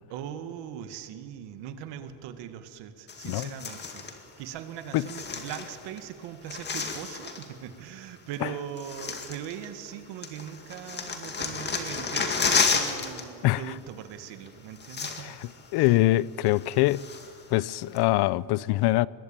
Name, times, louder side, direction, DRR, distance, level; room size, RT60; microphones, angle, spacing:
voice 1, 0.1-4.1 4.4-15.4 15.7-16.0, right 9 dB, 85° right, 2.2 m, -40 dB
sound 1, 3.1-4.2 4.9-6.0 6.3-7.5 8.3-8.4 8.8-9.9 10.2-13.2 13.5-13.7 14.5-14.6 14.8-15.5 15.9-16.0 16.5-17.4 18.0-18.1, left 5 dB, 25° left, 2.2 m, -31 dB
voice 2, 15.2-17.1 17.5-19.1, left 17 dB, 65° left, 0.6 m, -24 dB
24.5 x 21.5 x 9.1 m
cardioid pair, 170°, 42 cm